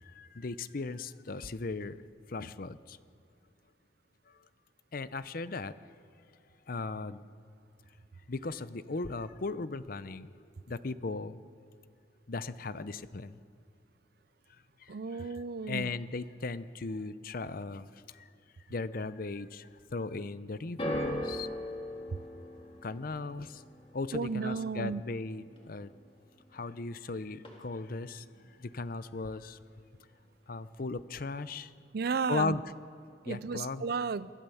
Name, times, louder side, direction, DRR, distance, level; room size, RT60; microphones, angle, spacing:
voice 1, 0.0-2.0 2.3-3.0 4.3-4.4 4.9-5.7 6.7-7.3 8.3-10.4 10.7-11.4 12.3-13.4 14.8-15.3 15.7-18.3 18.7-21.5 22.8-23.6 23.9-25.9 26.5-28.3 28.6-29.6 30.5-31.7 32.3-32.6 33.2-33.8, left 3 dB, 50° left, 14 dB, 0.7 m, -37 dB
voice 2, 14.9-15.9 22.1-22.2 24.1-25.0 31.9-32.6 33.2-34.3, right 5 dB, 60° right, 18 dB, 0.5 m, -33 dB
sound 1, 20.8-27.1 27.3-28.0 28.7-28.8, equal, 30° left, 3.2 m, -41 dB
24.5 x 15.5 x 7.1 m, 2.5 s
head